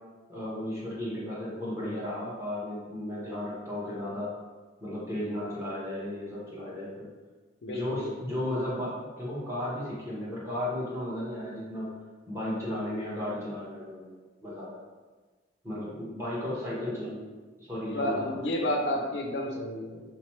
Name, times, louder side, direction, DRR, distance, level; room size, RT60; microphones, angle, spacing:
voice 1, 0.3-4.3 4.8-7.1 7.6-11.9 12.3-14.1 14.4-14.7 15.6-17.3 17.6-18.7, left 1 dB, 15° right, -8 dB, 1.1 m, -34 dB
voice 2, 7.6-8.4 17.9-20.0, left 1 dB, 65° left, 1 dB, 0.4 m, -31 dB
3.5 x 3.0 x 3.1 m, 1.3 s
head